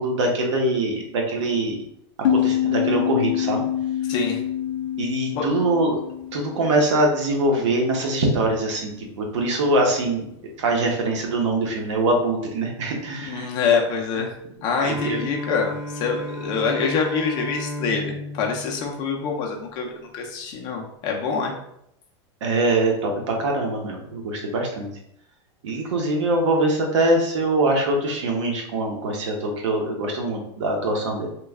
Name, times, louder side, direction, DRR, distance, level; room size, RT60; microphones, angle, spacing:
voice 1, 0.0-1.8 2.3-3.6 5.0-6.0 6.3-10.3 10.6-13.5 14.8-15.2 22.4-24.9 25.6-31.3, right 2 dB, 80° right, 1 dB, 0.9 m, -23 dB
sound 1, 2.2-7.6, left 10 dB, 85° left, 0.4 m, -26 dB
voice 2, 4.1-4.4 5.3-5.4 13.2-14.3 14.6-21.5, left 5 dB, 30° left, 1 dB, 0.5 m, -25 dB
Bowed string instrument, 14.8-19.6, left 1 dB, 15° right, 0.7 m, -34 dB
3.0 x 2.3 x 3.4 m, 0.76 s
supercardioid pair, 170°, 15 cm